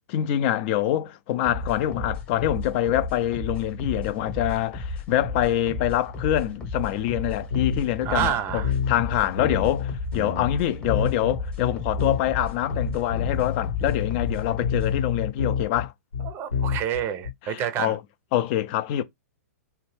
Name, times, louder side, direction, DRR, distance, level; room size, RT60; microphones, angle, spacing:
voice 1, 0.1-15.9 17.4-18.0 18.3-19.0, left 12 dB, 40° left, 0.4 m, -25 dB
sound 1, 1.4-15.0, left 2 dB, 10° left, 0.9 m, -34 dB
sound 2, 7.5-8.0 8.2-8.3 8.6-9.1 9.4-10.6 10.9-12.4 12.7-17.3, left 7 dB, 85° left, 1.0 m, -28 dB
voice 2, 8.0-8.7 16.2-18.0, right 10 dB, 30° right, 0.5 m, -28 dB
2.8 x 2.2 x 3.1 m
figure-of-eight pair, 110°, 8 cm